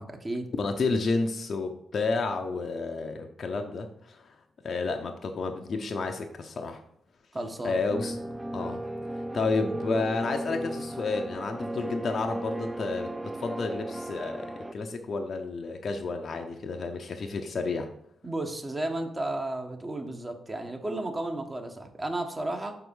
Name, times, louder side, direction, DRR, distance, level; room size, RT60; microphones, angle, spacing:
voice 1, 0.0-0.5 7.3-7.8 18.2-22.8, right 2 dB, 30° right, 4 dB, 1.3 m, -33 dB
voice 2, 0.6-4.2 4.6-6.8 7.6-8.1 8.5-8.8 9.3-17.9, left 3 dB, 60° left, 4 dB, 0.7 m, -31 dB
sound 1, 7.9-14.7, right 1 dB, 10° right, 0.5 m, -36 dB
5.7 x 4.6 x 5.4 m, 0.71 s
supercardioid pair, 45°, 0 cm